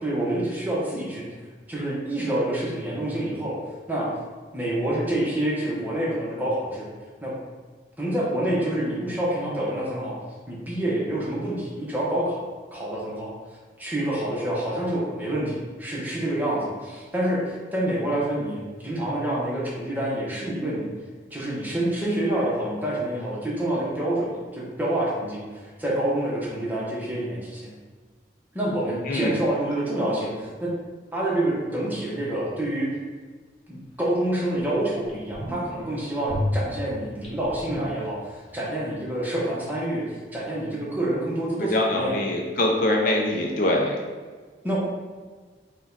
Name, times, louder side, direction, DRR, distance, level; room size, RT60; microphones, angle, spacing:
voice 1, 0.0-1.2 1.7-3.6 3.9-4.1 4.5-6.9 7.2-7.3 8.0-10.2 10.5-13.3 13.8-20.9 21.3-27.7 28.5-30.7 31.1-32.9 33.7-42.2 44.6-44.8, right 1 dB, 10° right, -6 dB, 0.8 m, -27 dB
sound 1, 34.0-34.1 34.6-34.7 35.0-35.8 36.2-38.5 38.8-38.9, left 1 dB, 35° left, 1.0 m, -31 dB
voice 2, 41.6-44.0, left 1 dB, 50° left, 0 dB, 0.5 m, -23 dB
4.8 x 2.2 x 3.9 m, 1.5 s
head